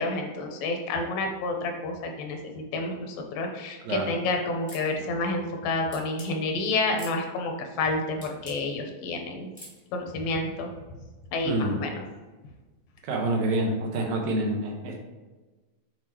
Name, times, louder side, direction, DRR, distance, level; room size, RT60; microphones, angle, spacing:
voice 1, 0.0-9.5 9.9-10.7 11.3-12.0, left 2 dB, 80° left, 3 dB, 2.5 m, -29 dB
sound 1, 4.7-4.9 5.9-6.3 7.0-7.2 8.2-8.6 9.5-9.8, equal, 25° left, 0.6 m, -44 dB
voice 2, 11.4-11.8 13.0-15.0, right 1 dB, 70° right, 2 dB, 2.1 m, -27 dB
7.7 x 4.2 x 2.9 m, 1.2 s
omnidirectional pair, 4.0 m